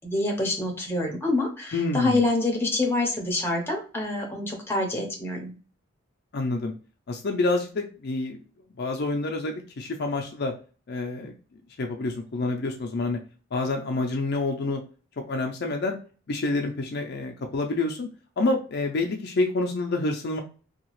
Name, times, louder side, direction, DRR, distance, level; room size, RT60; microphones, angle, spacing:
voice 1, 0.0-5.5, left 2 dB, 10° left, 0 dB, 0.7 m, -26 dB
voice 2, 1.7-2.2 6.3-6.7 7.1-8.4 8.8-10.5 10.9-11.3 11.8-13.2 13.5-14.8 15.2-16.0 16.3-18.1 18.4-20.4, left 2 dB, 50° left, 3 dB, 0.4 m, -27 dB
2.8 x 2.3 x 3.0 m, 0.37 s
head